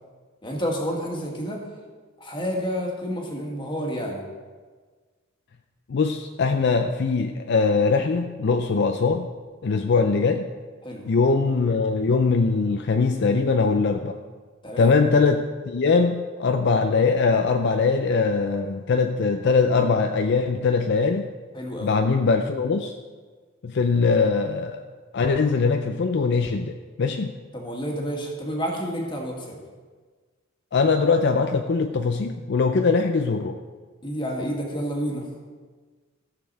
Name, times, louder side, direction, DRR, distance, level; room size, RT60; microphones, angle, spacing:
voice 1, 0.4-1.6 2.2-4.2 10.8-11.0 14.6-14.9 21.5-21.9 27.5-29.6 34.0-35.2, equal, 25° left, 0 dB, 1.7 m, -29 dB
voice 2, 5.9-9.3 9.6-10.5 11.0-14.1 14.8-21.3 21.8-23.0 23.6-24.8 25.1-27.3 30.7-33.6, left 4 dB, 60° left, 6 dB, 0.5 m, -21 dB
14.5 x 6.9 x 4.1 m, 1.5 s
head